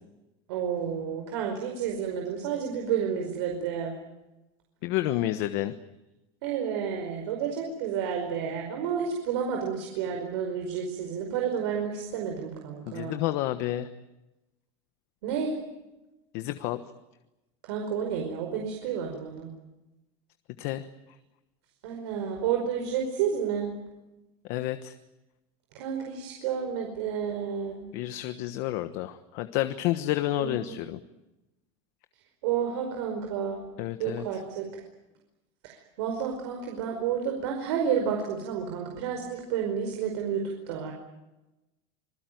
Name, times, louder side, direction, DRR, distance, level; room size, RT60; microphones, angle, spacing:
voice 1, 0.5-4.0 6.4-13.2 15.2-15.5 17.6-19.5 21.8-23.8 25.7-27.9 30.4-30.6 32.4-33.7 34.0-34.8 35.6-40.9, right 7 dB, 80° right, 2 dB, 5.1 m, -30 dB
voice 2, 4.8-5.7 12.9-13.9 16.3-16.8 20.6-20.9 24.5-24.9 27.9-31.0 33.8-34.2, left 14 dB, 55° left, 9 dB, 1.2 m, -30 dB
26.5 x 20.5 x 9.3 m, 1.0 s
cardioid pair, 170°, 14 cm